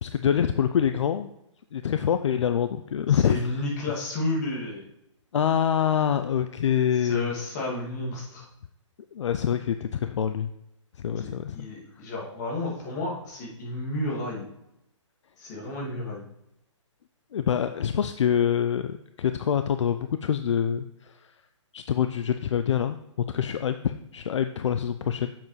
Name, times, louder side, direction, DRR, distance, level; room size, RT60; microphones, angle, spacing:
voice 1, 0.0-1.3 1.7-3.5 5.3-7.3 9.1-10.5 11.0-11.7 17.3-21.2 21.7-23.0 23.3-25.3, left 8 dB, 65° left, 9 dB, 0.4 m, -25 dB
voice 2, 3.1-4.8 6.9-8.5 11.1-14.5 15.4-16.2, left 2 dB, 35° left, -2 dB, 2.3 m, -32 dB
7.7 x 7.2 x 3.2 m, 0.82 s
hypercardioid pair, 155°, 16 cm